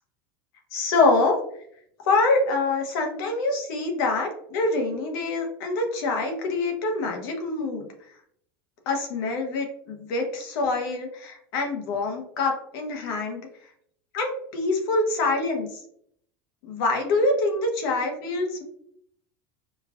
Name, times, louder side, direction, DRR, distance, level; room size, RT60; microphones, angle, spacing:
voice 1, 0.7-1.4 2.1-7.9 8.9-13.5 14.1-15.7 16.6-18.6, left 3 dB, 75° left, 3 dB, 1.1 m, -25 dB
5.3 x 2.4 x 2.4 m, 0.67 s
supercardioid pair, 140°, 12 cm